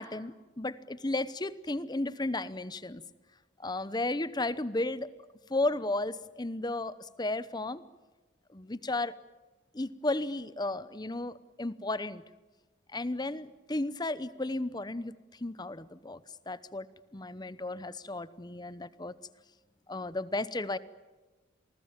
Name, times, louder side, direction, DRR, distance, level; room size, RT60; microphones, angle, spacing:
voice 1, 0.0-3.0 3.6-5.1 5.5-7.8 8.5-9.2 9.7-12.2 12.9-16.2 16.5-16.9 17.1-19.1 19.9-20.8, left 2 dB, 20° left, 16 dB, 0.8 m, -34 dB
28.0 x 19.5 x 8.9 m, 1.2 s
head